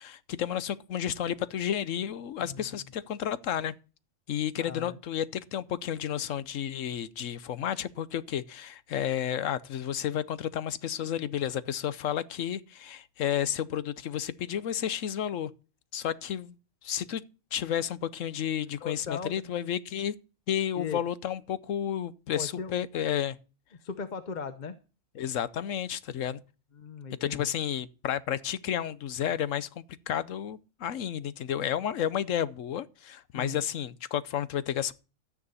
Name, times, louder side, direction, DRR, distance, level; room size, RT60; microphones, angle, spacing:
voice 1, 0.0-3.7 4.3-15.5 15.9-16.6 16.8-17.2 17.5-20.1 20.5-23.4 25.2-26.4 27.2-34.9, left 10 dB, 75° left, 1.1 m, -31 dB
voice 2, 4.6-5.0 18.8-19.5 20.8-21.0 22.3-22.8 23.8-24.7 26.7-27.4 33.3-33.6, left 6 dB, 40° left, 0.8 m, -38 dB
13.0 x 9.6 x 4.1 m
omnidirectional pair, 1.4 m